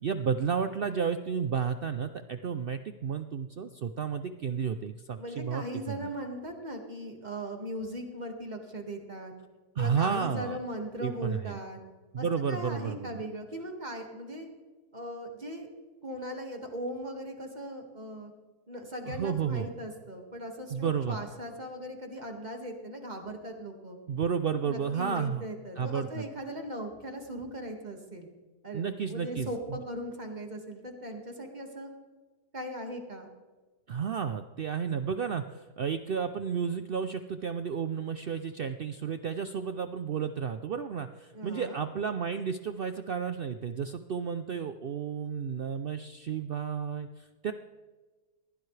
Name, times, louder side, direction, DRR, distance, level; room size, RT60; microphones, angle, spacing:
voice 1, 0.0-6.1 9.8-10.6 11.0-11.6 12.1-13.2 19.0-19.7 20.7-21.2 24.1-25.5 25.8-26.2 28.7-29.8 33.9-47.5, right 6 dB, 85° right, 9 dB, 0.5 m, -32 dB
voice 2, 5.2-9.3 9.8-11.8 12.2-14.5 14.9-15.7 16.0-18.3 18.7-24.0 24.6-28.3 28.6-31.9 32.5-33.3 41.3-41.8, equal, 30° right, 3 dB, 2.0 m, -39 dB
21.0 x 15.5 x 3.3 m, 1.3 s
omnidirectional pair, 1.7 m